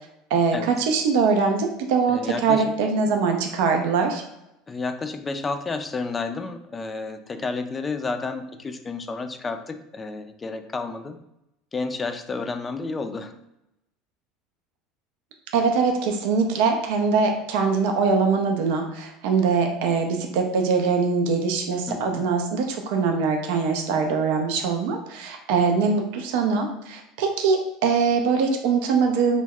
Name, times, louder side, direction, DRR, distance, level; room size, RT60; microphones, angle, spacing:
voice 1, 0.3-4.2 15.5-29.4, right 5 dB, 70° right, 4 dB, 0.3 m, -22 dB
voice 2, 2.1-2.7 4.7-11.2 11.7-13.3 21.9-22.3 25.5-25.6, left 3 dB, 25° left, 8 dB, 0.3 m, -31 dB
2.2 x 2.1 x 3.5 m, 0.86 s
hypercardioid pair, 85°, 0 cm